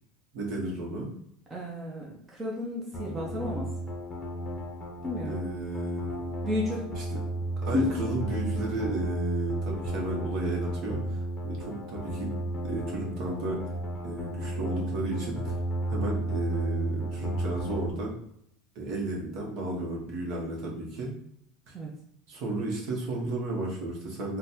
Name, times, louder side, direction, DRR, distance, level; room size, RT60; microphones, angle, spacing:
voice 1, 0.3-1.1 5.3-6.4 7.0-7.2 7.6-12.3 12.6-13.6 14.0-15.5 15.9-18.1 18.7-21.1 21.7-21.8 22.3-24.4, right 2 dB, 55° right, -1 dB, 1.0 m, -33 dB
voice 2, 1.5-3.7 5.0-5.4 6.4-6.9 7.7-7.9 21.7-21.9, left 2 dB, 15° right, -3 dB, 0.6 m, -32 dB
sound 1, 2.9-17.9, right 1 dB, 20° left, 0.7 m, -33 dB
3.9 x 2.2 x 2.7 m, 0.71 s
supercardioid pair, 145°, 0 cm